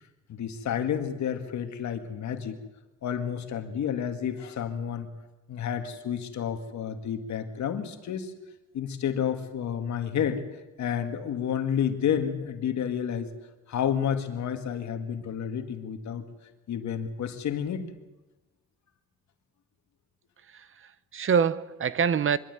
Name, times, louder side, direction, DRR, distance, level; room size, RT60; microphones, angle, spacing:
voice 1, 0.3-2.6 3.0-5.1 5.5-8.3 8.7-10.4 10.8-13.3 13.7-16.3 16.7-17.9, left 8 dB, 65° left, 2.1 m, -30 dB
voice 2, 20.5-22.4, right 7 dB, 45° right, 0.8 m, -26 dB
24.0 x 12.0 x 9.3 m
cardioid pair, 90°, 30 cm